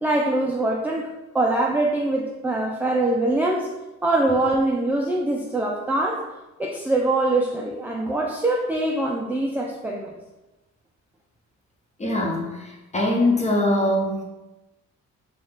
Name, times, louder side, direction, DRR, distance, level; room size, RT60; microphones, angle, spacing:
voice 1, 0.0-3.7 4.0-6.3 6.6-10.1, right 2 dB, 5° right, -1 dB, 0.4 m, -23 dB
voice 2, 12.0-14.2, left 1 dB, 20° left, -1 dB, 1.1 m, -22 dB
4.9 x 2.4 x 3.8 m, 1.0 s
cardioid pair, 90°, 30 cm